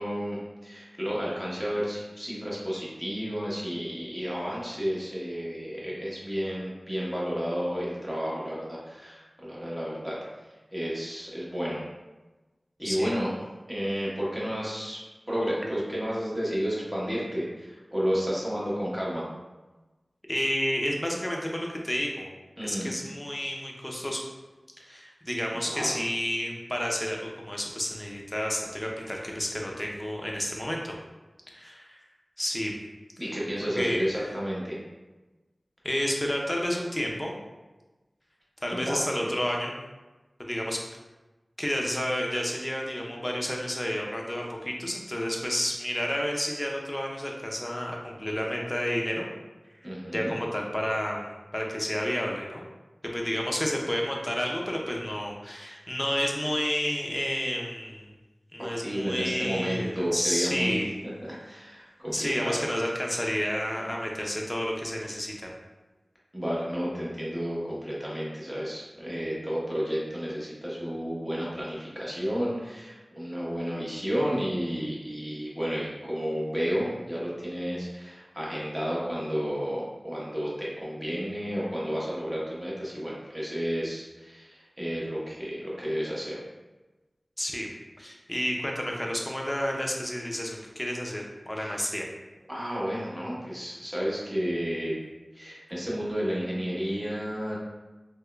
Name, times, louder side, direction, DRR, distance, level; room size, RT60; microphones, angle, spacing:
voice 1, 0.0-10.2 10.7-11.8 12.8-13.3 13.7-15.0 15.3-19.3 22.6-22.9 24.9-25.0 25.7-25.9 33.2-34.8 38.7-39.3 49.8-50.3 58.6-60.8 61.2-62.6 66.3-86.4 91.6-91.8 92.5-95.0 95.3-97.6, equal, 10° right, -6 dB, 1.0 m, -31 dB
voice 2, 20.3-22.3 22.6-24.2 24.8-30.9 31.5-32.0 32.4-32.8 33.8-34.0 35.8-37.3 38.6-39.8 40.5-40.8 41.6-49.3 50.1-52.6 53.1-58.1 58.5-60.9 62.1-65.5 87.4-87.7 88.0-92.1, equal, 20° left, -1 dB, 0.6 m, -30 dB
3.5 x 2.9 x 2.2 m, 1.2 s
wide cardioid pair, 60°, 0 cm